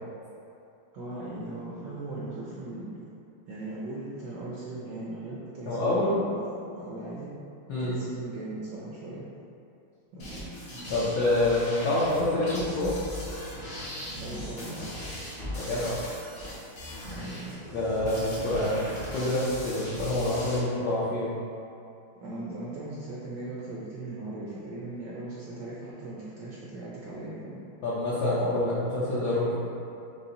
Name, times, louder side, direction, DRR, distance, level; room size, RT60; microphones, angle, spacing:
voice 1, 0.9-2.9 3.5-7.3 7.8-9.2 10.1-10.3 14.2-14.9 17.0-17.6 22.2-27.6, right 2 dB, 70° right, -7 dB, 1.1 m, -38 dB
voice 2, 5.7-6.1 7.7-7.9 10.9-13.0 15.6-16.0 17.7-21.3 27.8-29.6, left 1 dB, 70° left, -8 dB, 1.0 m, -27 dB
sound 1, 10.2-20.6, equal, 50° left, 0.7 m, -39 dB
5.6 x 2.1 x 3.8 m, 2.7 s
omnidirectional pair, 2.4 m